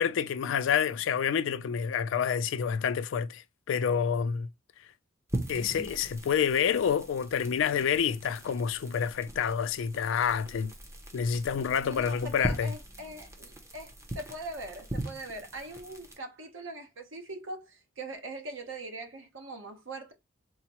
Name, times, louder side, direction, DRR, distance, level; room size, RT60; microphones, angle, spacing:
voice 1, 0.0-4.5 5.5-10.7 11.1-12.7, left 7 dB, 65° left, 0.3 m, -28 dB
sound 1, 5.3-16.2, right 1 dB, 15° right, 0.6 m, -41 dB
voice 2, 11.9-20.1, right 1 dB, 70° right, 0.9 m, -41 dB
4.0 x 2.0 x 2.9 m
head